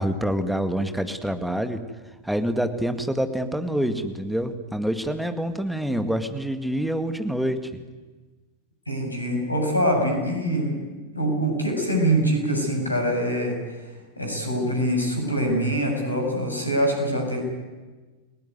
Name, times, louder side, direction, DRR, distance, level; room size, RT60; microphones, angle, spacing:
voice 1, 0.0-1.8 2.2-7.7, equal, ahead, 9 dB, 2.0 m, -26 dB
voice 2, 8.9-10.9 11.1-17.4, equal, 85° left, 3 dB, 7.3 m, -24 dB
29.5 x 18.5 x 9.6 m, 1.3 s
figure-of-eight pair, 90°, 0 cm